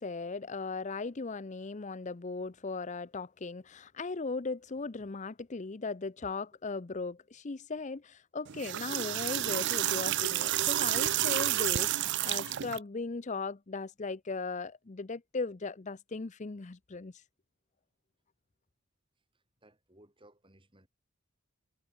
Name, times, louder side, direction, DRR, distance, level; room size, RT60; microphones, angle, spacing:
voice 1, 0.0-11.9 12.2-17.1, left 3 dB, 35° left, 0.6 m, -38 dB
sound 1, 8.5-12.8, right 14 dB, 50° right, 0.5 m, -30 dB
voice 2, 19.3-20.9, right 1 dB, 20° right, 5.9 m, -61 dB
head